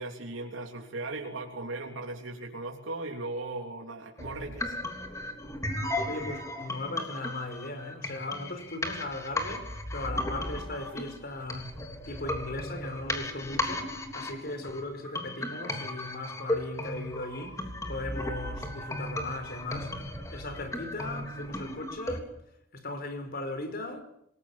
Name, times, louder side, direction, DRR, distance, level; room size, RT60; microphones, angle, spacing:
voice 1, 0.0-4.8, right 2 dB, 80° right, 3.4 m, -37 dB
sound 1, 4.2-22.2, left 1 dB, 15° left, 3.5 m, -36 dB
voice 2, 6.1-11.8 12.1-20.0 20.3-22.3 22.7-24.0, left 2 dB, 50° left, 5.3 m, -38 dB
27.0 x 20.5 x 7.5 m
head